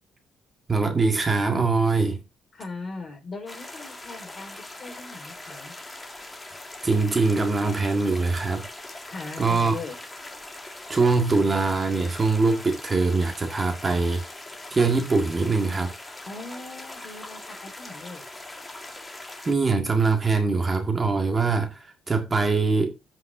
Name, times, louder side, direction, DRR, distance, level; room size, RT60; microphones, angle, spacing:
voice 1, 0.7-2.2 6.8-8.7 9.4-9.7 10.9-14.2 14.7-15.9 19.5-22.9, right 3 dB, 30° right, 1.9 m, -23 dB
voice 2, 2.5-5.7 9.1-10.0 13.8-14.0 16.2-18.2, left 3 dB, 40° left, 4.7 m, -39 dB
sound 1, 3.5-19.5, left 2 dB, 15° left, 2.0 m, -41 dB
14.0 x 5.7 x 2.7 m
cardioid pair, 90°, 0 cm